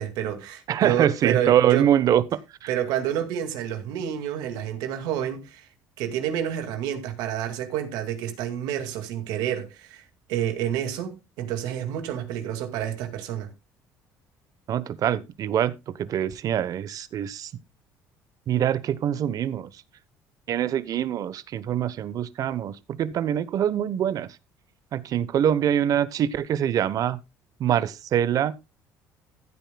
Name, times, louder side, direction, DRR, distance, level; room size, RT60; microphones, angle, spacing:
voice 1, 0.0-1.9 2.7-5.7 6.0-13.5, right 10 dB, 80° right, 2.2 m, -29 dB
voice 2, 0.7-2.2 2.6-2.7 14.7-17.5 18.5-19.7 20.5-24.3 24.9-27.2 27.6-28.5, right 10 dB, 55° right, 1.0 m, -24 dB
15.0 x 9.2 x 2.3 m
supercardioid pair, 85°, 7 cm